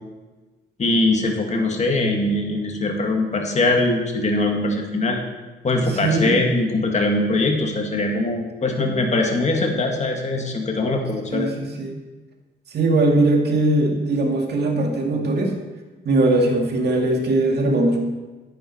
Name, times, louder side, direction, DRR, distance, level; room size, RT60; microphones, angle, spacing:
voice 1, 0.8-5.2 5.6-11.5, left 2 dB, 35° left, 2 dB, 2.0 m, -22 dB
voice 2, 5.9-6.4 11.3-12.0 12.7-15.6 16.1-18.0, right 2 dB, 55° right, 1 dB, 2.1 m, -20 dB
10.0 x 9.7 x 4.4 m, 1.2 s
cardioid pair, 90°, 20 cm